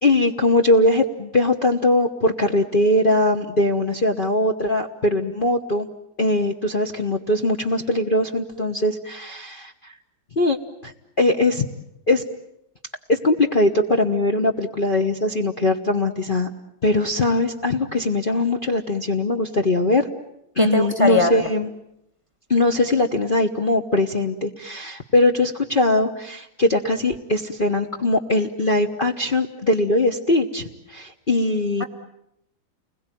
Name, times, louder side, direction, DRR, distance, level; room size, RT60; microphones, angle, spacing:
voice 1, 0.0-5.9 6.2-9.7 10.4-10.6 10.8-11.7 12.1-12.2 13.1-16.5 16.8-20.1 20.6-21.7 22.5-31.8, left 2 dB, 30° left, 2 dB, 1.2 m, -21 dB
voice 2, 20.6-21.4, left 2 dB, 15° right, 6 dB, 1.5 m, -20 dB
30.0 x 21.5 x 9.2 m, 0.83 s
omnidirectional pair, 2.1 m